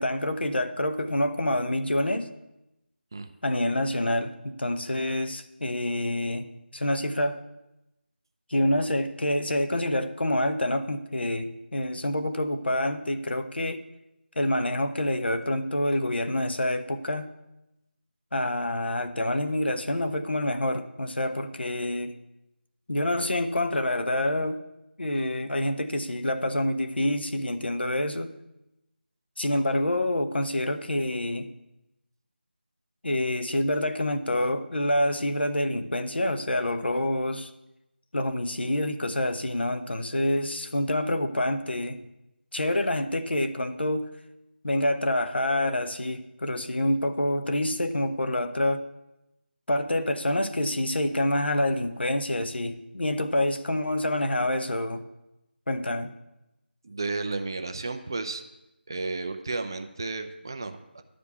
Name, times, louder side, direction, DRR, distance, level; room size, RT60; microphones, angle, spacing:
voice 1, 0.0-2.3 3.4-7.4 8.5-13.8 14.4-17.3 18.3-22.2 22.9-24.6 25.0-28.3 29.4-31.5 33.0-37.5 38.1-42.0 42.5-44.1 44.6-48.8 49.7-55.0 55.7-56.1, left 1 dB, 65° left, 9 dB, 0.9 m, -27 dB
voice 2, 56.8-58.4 58.9-61.0, right 3 dB, 20° right, 8 dB, 0.4 m, -33 dB
11.0 x 5.1 x 8.2 m, 0.92 s
figure-of-eight pair, 165°, 6 cm